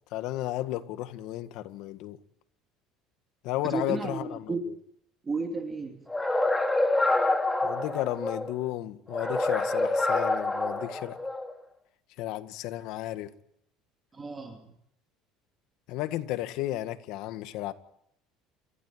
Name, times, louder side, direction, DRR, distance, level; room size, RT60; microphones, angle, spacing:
voice 1, 0.1-2.2 3.4-4.7 7.6-11.2 12.2-13.3 15.9-17.7, left 15 dB, 65° left, 1.8 m, -33 dB
voice 2, 3.6-4.6 5.2-6.0 14.1-14.7, right 4 dB, 20° right, 2.8 m, -33 dB
sound 1, 6.1-8.5 9.1-11.5, left 2 dB, 5° left, 2.5 m, -27 dB
29.0 x 15.5 x 9.3 m
cardioid pair, 145°, 0 cm